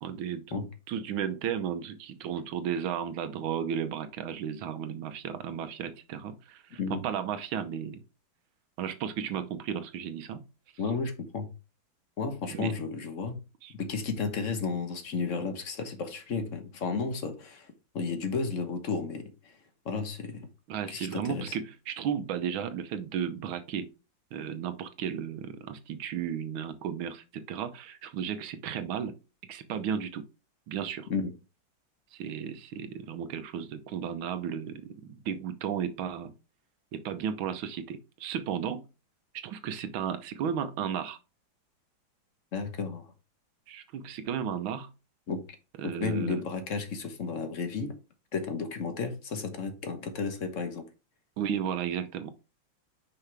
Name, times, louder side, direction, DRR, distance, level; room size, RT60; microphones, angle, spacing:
voice 1, 0.0-8.0 8.8-10.4 12.5-12.7 13.6-13.7 20.7-23.9 24.3-29.2 29.5-30.2 30.7-31.1 32.1-36.3 36.9-38.8 39.4-41.2 43.7-44.9 45.8-46.4 51.4-52.3, right 8 dB, 85° right, 1.6 m, -34 dB
voice 2, 10.8-11.5 12.2-13.4 13.7-19.6 19.8-20.5 20.9-21.5 31.1-31.3 42.5-43.1 45.3-45.4 45.8-48.0 48.3-50.8, left 4 dB, 45° left, 1.1 m, -33 dB
5.7 x 5.6 x 3.3 m
omnidirectional pair, 2.2 m